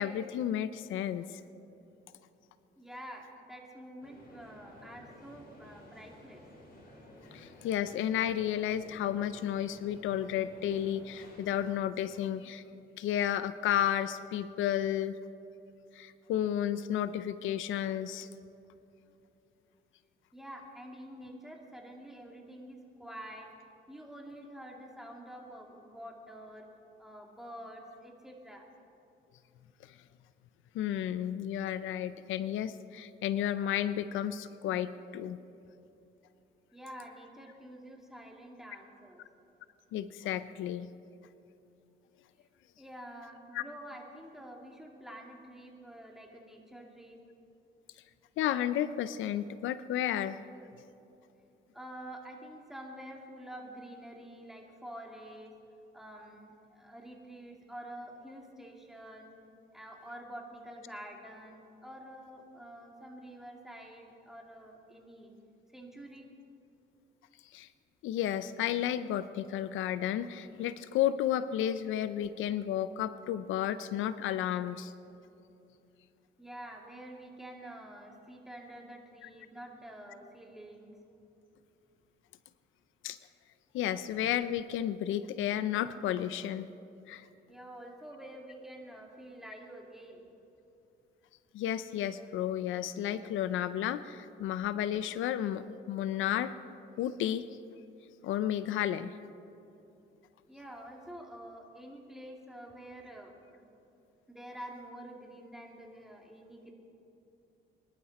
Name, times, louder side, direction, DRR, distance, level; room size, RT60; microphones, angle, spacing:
voice 1, 0.0-1.4 7.3-12.6 13.0-15.2 15.9-18.3 29.8-30.0 30.7-35.4 39.9-40.9 43.5-43.6 48.4-50.4 67.5-67.7 68.0-74.9 79.2-79.3 83.0-83.2 83.7-86.7 87.1-87.3 91.5-96.5 97.0-97.5 98.2-99.2, left 11 dB, 85° left, 14 dB, 0.5 m, -32 dB
voice 2, 2.8-6.4 20.3-23.5 23.9-26.7 27.0-28.6 36.7-39.2 42.8-47.2 51.7-55.5 55.9-59.3 59.7-65.3 65.7-66.3 76.4-80.9 87.5-90.3 100.5-103.7 104.3-106.7, right 1 dB, ahead, 0 dB, 2.6 m, -48 dB
sound 1, 4.0-11.7, left 1 dB, 50° left, 4.3 m, -54 dB
23.5 x 11.5 x 4.2 m, 2.8 s
cardioid pair, 90°, 20 cm